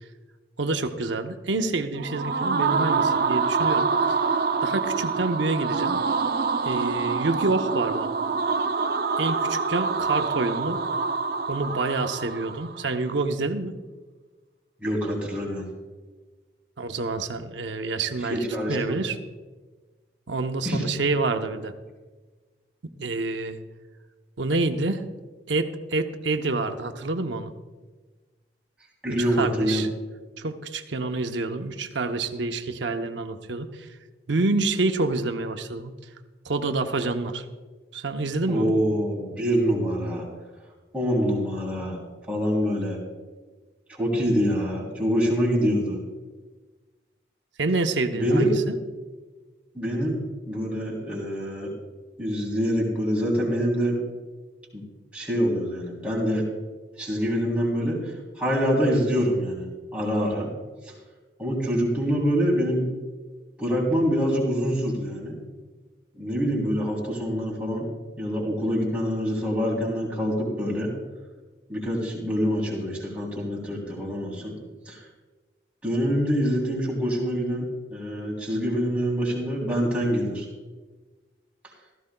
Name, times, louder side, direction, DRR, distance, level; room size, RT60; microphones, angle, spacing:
voice 1, 0.6-4.2 4.6-6.0 6.6-8.1 9.2-10.8 11.5-13.8 16.8-18.4 18.7-19.2 20.3-21.7 23.0-23.6 24.4-25.0 25.5-27.5 29.1-29.9 30.4-33.9 34.3-35.9 36.4-37.4 37.9-38.7 47.6-48.7, right 3 dB, 85° right, 6 dB, 0.8 m, -27 dB
sound 1, 1.9-12.8, right 4 dB, 55° right, 0.4 m, -26 dB
voice 2, 14.8-15.6 18.3-19.0 20.6-20.9 29.0-29.8 38.5-40.3 40.9-42.0 42.3-43.0 43.9-46.0 48.1-48.6 49.7-50.2 50.5-51.7 52.2-53.9 54.7-54.8 55.1-56.4 57.0-58.0 58.4-60.5 60.8-60.9 61.4-62.8 63.6-65.3 66.1-67.9 68.2-70.9 71.7-74.5 74.8-75.0 75.8-80.5, equal, 5° right, -5 dB, 3.0 m, -25 dB
16.0 x 14.0 x 2.2 m, 1.3 s
head